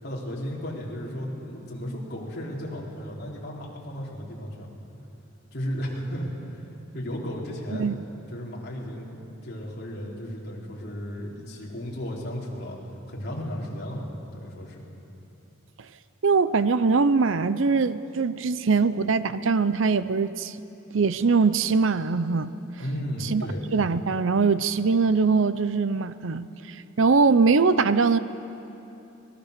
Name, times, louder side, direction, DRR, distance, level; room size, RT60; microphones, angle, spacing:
voice 1, 0.0-4.7 5.5-6.6 6.9-7.9 8.3-12.8 13.1-14.1 14.3-14.8 22.8-23.6, equal, 50° left, -4 dB, 4.0 m, -34 dB
voice 2, 16.2-20.6 20.9-22.5 23.3-23.4 23.7-28.2, right 4 dB, 70° right, 13 dB, 0.6 m, -22 dB
23.5 x 19.5 x 6.7 m, 2.9 s
head